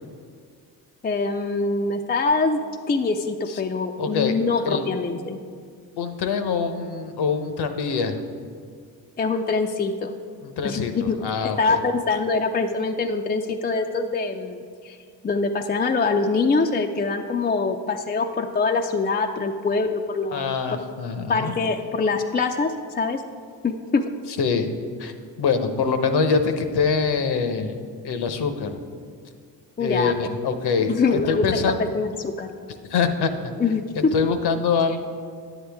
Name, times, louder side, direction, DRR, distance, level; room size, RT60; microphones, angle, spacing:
voice 1, 1.0-2.6 2.9-5.4 9.2-10.1 10.6-11.2 11.4-15.0 15.2-20.6 21.3-23.2 23.6-24.0 29.8-30.1 30.9-32.5 33.6-34.3, left 4 dB, 20° left, 4 dB, 0.5 m, -24 dB
voice 2, 4.0-4.3 4.7-4.8 6.0-8.2 10.4-11.8 20.3-21.5 24.4-24.7 25.0-25.1 25.4-27.8 28.0-28.8 29.8-31.9 32.9-33.5 34.1-35.0, left 5 dB, 65° left, 8 dB, 0.9 m, -24 dB
9.5 x 8.0 x 3.5 m, 2.1 s
supercardioid pair, 55°, 43 cm